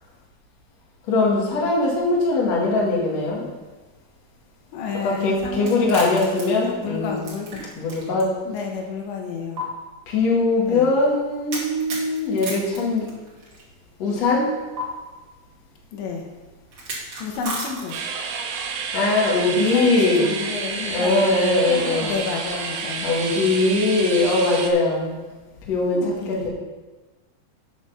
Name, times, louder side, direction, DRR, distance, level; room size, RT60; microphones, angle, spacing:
voice 1, 1.1-3.4 5.0-7.2 7.7-8.4 10.1-13.1 14.0-14.5 18.9-20.3 20.7-22.1 23.0-25.2 25.7-26.5, left 2 dB, 50° left, -3 dB, 2.3 m, -21 dB
voice 2, 4.7-7.6 8.4-9.6 10.7-10.9 15.9-16.2 17.2-18.0 19.6-21.3 21.7-23.1 25.9-26.5, left 5 dB, 80° left, 1 dB, 3.4 m, -31 dB
sound 1, 5.6-8.2 8.6-8.7 9.6-9.7 11.5-13.6 14.8-14.9 16.7-18.2, right 1 dB, 40° right, 2.2 m, -33 dB
sound 2, 17.9-24.7, right 5 dB, 75° right, 2.5 m, -30 dB
9.3 x 6.3 x 5.8 m, 1.2 s
omnidirectional pair, 5.2 m